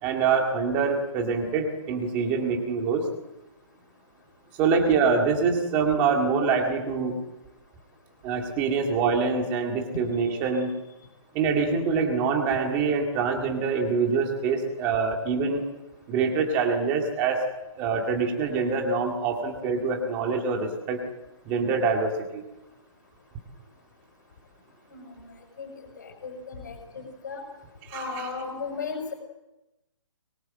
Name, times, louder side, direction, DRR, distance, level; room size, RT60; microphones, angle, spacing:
voice 1, 0.0-3.0 4.6-7.2 8.2-10.7 11.3-15.6 16.1-17.4 17.8-21.0 21.5-22.4 27.9-28.3, right 5 dB, 10° right, 2 dB, 2.1 m, -25 dB
voice 2, 24.9-25.3 25.6-25.7 26.0-27.4 27.9-29.1, left 5 dB, 35° left, 4 dB, 6.0 m, -36 dB
24.0 x 23.0 x 7.7 m, 0.97 s
hypercardioid pair, 180°, 16 cm